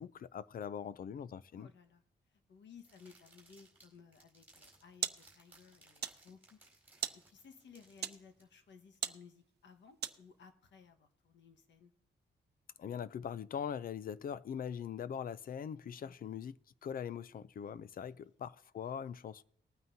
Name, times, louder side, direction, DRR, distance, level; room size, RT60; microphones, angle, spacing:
voice 1, 0.0-1.7 12.8-16.6 16.8-19.4, left 8 dB, 50° left, 0.4 m, -42 dB
voice 2, 1.5-6.6 7.1-11.9 16.0-16.3 18.1-18.3, left 6 dB, 80° left, 1.4 m, -59 dB
sound 1, 2.8-8.4, right 2 dB, 10° right, 3.8 m, -63 dB
sound 2, 4.4-10.5, right 9 dB, 65° right, 0.6 m, -44 dB
20.0 x 9.3 x 2.7 m
wide cardioid pair, 170°, 18 cm